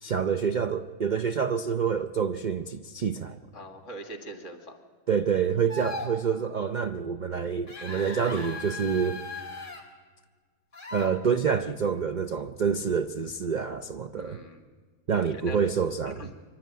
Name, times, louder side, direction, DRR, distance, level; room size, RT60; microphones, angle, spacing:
voice 1, 0.0-3.4 5.1-9.2 10.9-14.4 15.1-16.3, right 6 dB, 65° right, 9 dB, 0.4 m, -27 dB
voice 2, 3.5-4.8 14.1-14.6 15.1-15.6 16.1-16.3, right 1 dB, 50° left, 6 dB, 2.4 m, -42 dB
sound 1, 5.7-6.1 7.7-9.8 10.7-11.1, left 2 dB, 30° left, 2.8 m, -38 dB
25.5 x 12.0 x 9.3 m, 1.5 s
omnidirectional pair, 1.7 m